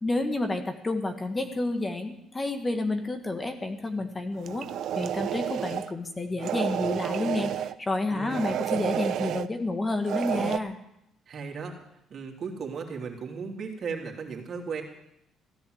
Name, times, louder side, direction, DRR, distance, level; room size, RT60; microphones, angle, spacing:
voice 1, 0.0-4.7 4.9-10.8, left 2 dB, 20° left, 6 dB, 1.7 m, -30 dB
sound 1, 4.4-5.9 6.4-7.7 8.3-9.5 10.0-10.6, right 10 dB, 70° right, 0.6 m, -30 dB
voice 2, 8.1-8.5 11.3-11.7 12.1-14.8, right 5 dB, 50° right, 1 dB, 3.1 m, -36 dB
16.0 x 10.5 x 8.0 m, 0.81 s
cardioid pair, 100°, 0 cm